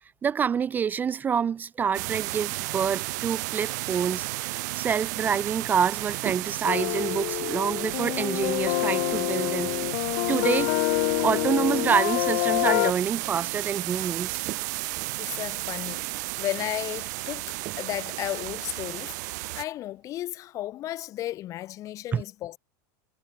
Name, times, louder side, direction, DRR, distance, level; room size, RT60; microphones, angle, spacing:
voice 1, 0.2-4.3 4.7-9.7 10.3-10.7 11.2-14.4 22.1-22.2, right 7 dB, 15° right, 0.5 m, -27 dB
sound 1, 1.9-19.6, right 23 dB, 65° right, 0.6 m, -33 dB
sound 2, 6.1-6.8 7.9-10.2 10.5-12.3 12.6-13.5 14.0-20.1, right 18 dB, 40° right, 7.6 m, -46 dB
sound 3, 6.6-12.9, left 40 dB or more, 55° left, 1.4 m, -27 dB
voice 2, 15.2-22.6, left 14 dB, 30° left, 1.0 m, -34 dB
supercardioid pair, 160°, 10 cm